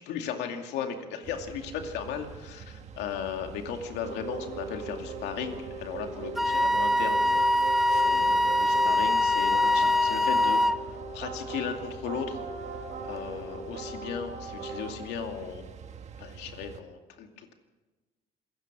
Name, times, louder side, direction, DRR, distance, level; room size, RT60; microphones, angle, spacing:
voice 1, 0.0-7.4 7.8-12.4 13.0-15.6 16.2-17.5, left 7 dB, 90° left, 4 dB, 2.4 m, -36 dB
sound 1, 1.2-16.8, right 6 dB, 40° right, 1.6 m, -46 dB
sound 2, 4.0-15.3, right 3 dB, 70° right, 4.6 m, -39 dB
Wind instrument woodwind instrument, 6.4-10.8, left 1 dB, ahead, 0.6 m, -23 dB
27.0 x 16.0 x 6.1 m, 1.2 s
cardioid pair, 110°, 17 cm